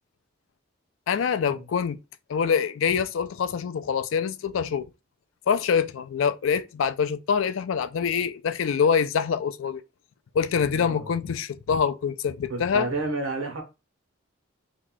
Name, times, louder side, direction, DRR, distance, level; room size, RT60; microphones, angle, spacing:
voice 1, 1.1-2.0 2.3-4.9 5.5-9.8 10.3-12.9, left 6 dB, 70° left, 0.4 m, -25 dB
voice 2, 10.7-11.1 12.5-13.6, right 2 dB, 80° right, 1.2 m, -30 dB
2.8 x 2.2 x 3.9 m
head